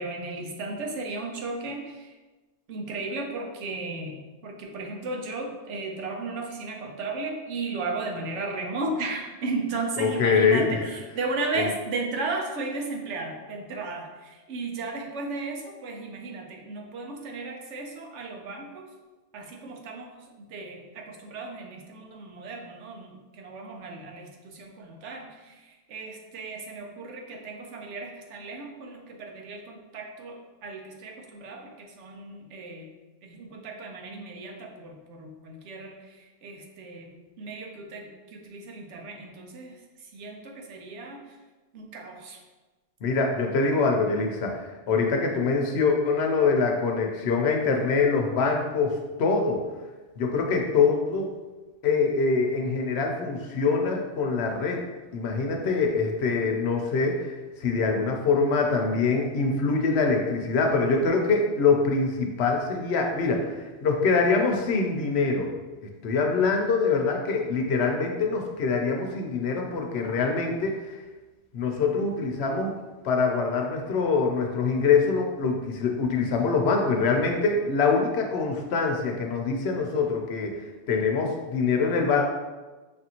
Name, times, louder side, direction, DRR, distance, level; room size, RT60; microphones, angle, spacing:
voice 1, 0.0-2.1 2.7-18.9 19.3-20.1 20.5-25.5 25.9-32.9 33.2-36.0 36.4-39.8 40.1-41.2 41.7-42.4, right 3 dB, 85° right, 2 dB, 1.0 m, -35 dB
voice 2, 10.0-10.9 11.6-11.7 43.0-49.6 50.2-51.3 51.8-54.8 55.1-65.5 66.0-71.0 71.5-72.7 73.0-80.6 80.9-82.3, left 4 dB, 70° left, 2 dB, 0.8 m, -24 dB
5.3 x 2.5 x 2.8 m, 1.2 s
omnidirectional pair, 1.2 m